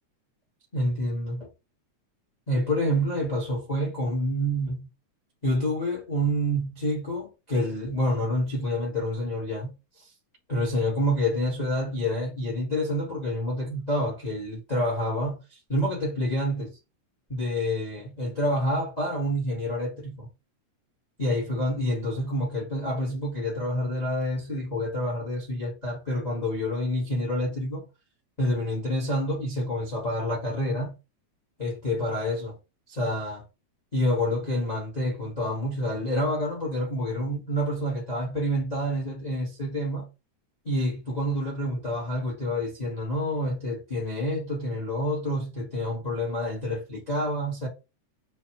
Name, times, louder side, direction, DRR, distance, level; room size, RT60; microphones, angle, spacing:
voice 1, 0.7-1.5 2.5-4.9 5.4-9.7 10.5-15.4 15.7-16.8 17.3-20.3 21.2-27.8 28.4-30.9 31.6-32.6 32.9-33.4 33.9-40.1 40.6-47.7, equal, 75° left, 0.3 m, -28 dB
6.8 x 2.3 x 2.9 m
omnidirectional pair, 3.4 m